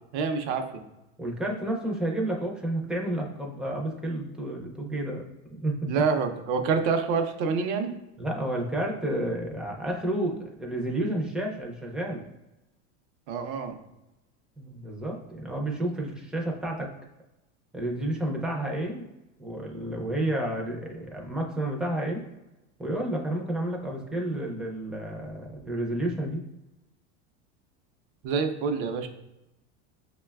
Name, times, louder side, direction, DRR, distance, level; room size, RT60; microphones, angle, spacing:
voice 1, 0.1-0.8 5.9-7.9 13.3-13.7 28.2-29.1, right 5 dB, 70° right, 6 dB, 0.6 m, -27 dB
voice 2, 1.2-5.2 5.5-5.9 8.2-12.2 14.6-16.9 17.7-19.1 19.4-22.2 22.8-26.4, right 1 dB, ahead, -1 dB, 0.4 m, -30 dB
5.5 x 2.2 x 2.3 m, 0.96 s
supercardioid pair, 130°, 34 cm